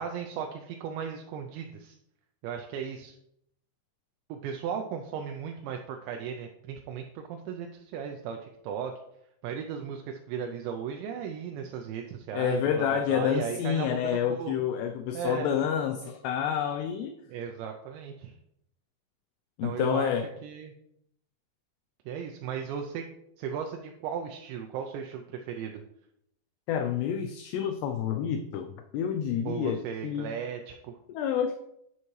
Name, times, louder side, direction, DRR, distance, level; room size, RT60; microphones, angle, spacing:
voice 1, 0.0-2.0 2.4-3.2 4.3-8.9 9.4-14.0 14.3-14.6 15.1-15.5 17.3-18.4 19.6-20.1 20.4-20.7 22.1-23.1 23.4-25.7 29.5-31.0, right 7 dB, 80° right, 4 dB, 2.8 m, -36 dB
voice 2, 12.3-17.1 19.6-20.3 26.7-30.4 31.1-31.6, left 8 dB, 80° left, 6 dB, 2.5 m, -29 dB
11.0 x 5.8 x 3.2 m, 0.77 s
omnidirectional pair, 5.3 m